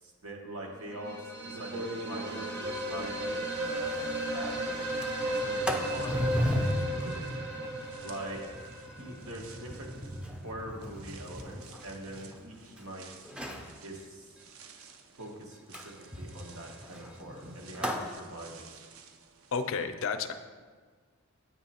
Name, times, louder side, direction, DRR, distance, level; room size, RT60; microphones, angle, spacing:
voice 1, 0.0-4.9 5.2-7.3 8.0-8.4 9.0-10.2 10.4-13.3 13.8-14.3 15.2-18.8, right 1 dB, 90° right, 0 dB, 1.2 m, -43 dB
sound 1, 0.9-9.7, right 1 dB, 50° right, 0.9 m, -35 dB
sound 2, 1.5-4.6 4.9-19.7, right 3 dB, 70° right, 0.5 m, -49 dB
Sliding door, 3.3-3.4 3.7-3.8 4.1-4.4 4.8-12.8 13.2-13.7 15.7-18.1, equal, 5° right, 0.4 m, -36 dB
voice 2, 19.5-20.3, left 5 dB, 65° left, 8 dB, 0.4 m, -31 dB
8.9 x 3.1 x 4.2 m, 1.5 s
head